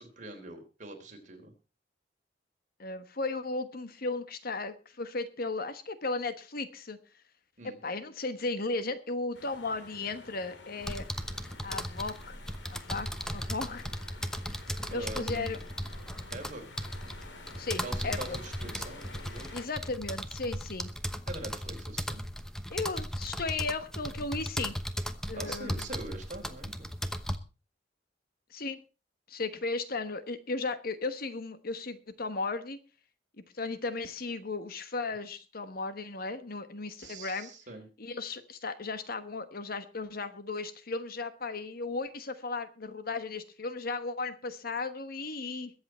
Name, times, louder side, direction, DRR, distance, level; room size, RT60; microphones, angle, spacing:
voice 1, 0.0-1.5 7.6-7.8 14.9-15.6 16.3-16.8 17.8-19.6 21.3-22.2 25.3-26.9 37.0-37.9, right 2 dB, 45° right, 3 dB, 3.7 m, -43 dB
voice 2, 2.8-7.0 7.8-11.1 11.6-12.4 12.7-13.9 14.9-15.6 17.6-18.4 19.5-20.9 22.7-24.8 25.3-25.8 28.5-28.8 29.3-32.8 33.5-37.5 38.0-45.7, left 3 dB, 55° left, 11 dB, 1.2 m, -35 dB
sound 1, 9.3-19.7, left 3 dB, 80° left, 2.4 m, -50 dB
sound 2, 10.8-27.4, equal, 5° left, 1.0 m, -37 dB
22.5 x 8.0 x 4.4 m, 0.33 s
head